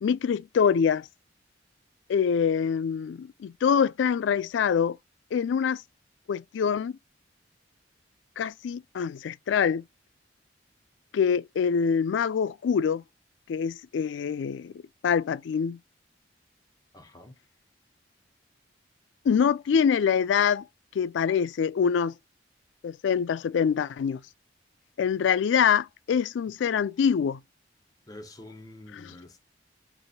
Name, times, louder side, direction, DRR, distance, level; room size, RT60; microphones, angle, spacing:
voice 1, 0.0-1.1 2.1-5.0 5.3-5.8 6.3-7.0 8.4-9.8 11.1-13.0 13.5-14.7 15.0-15.8 19.3-20.6 21.0-22.1 22.8-24.2 25.0-27.4 28.9-29.1, left 7 dB, 85° left, 0.3 m, -25 dB
voice 2, 16.9-17.3 28.1-29.5, left 1 dB, 20° left, 0.9 m, -46 dB
4.2 x 2.9 x 2.8 m
head